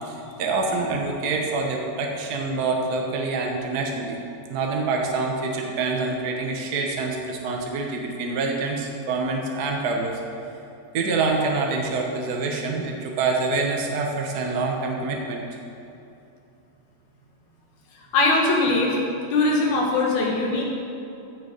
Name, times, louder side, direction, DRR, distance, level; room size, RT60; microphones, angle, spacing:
voice 1, 0.1-4.2 4.5-10.2 10.9-15.4, right 3 dB, 75° right, 1 dB, 0.9 m, -26 dB
voice 2, 18.1-19.0 19.3-20.6, left 2 dB, 75° left, -1 dB, 3.0 m, -21 dB
15.0 x 6.7 x 5.2 m, 2.7 s
omnidirectional pair, 3.4 m